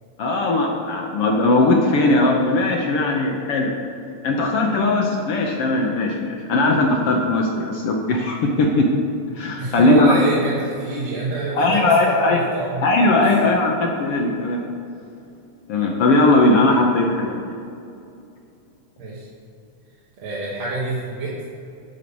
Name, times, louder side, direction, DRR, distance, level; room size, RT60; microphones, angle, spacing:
voice 1, 0.2-3.7 4.2-8.9 9.3-10.1 11.5-12.4 12.8-14.6 15.7-17.6, left 2 dB, 65° left, 0 dB, 1.6 m, -19 dB
voice 2, 9.6-12.9 13.2-13.3 19.0-19.3 20.2-21.4, right 2 dB, 65° right, -7 dB, 2.6 m, -26 dB
11.0 x 5.5 x 7.0 m, 2.6 s
omnidirectional pair, 3.3 m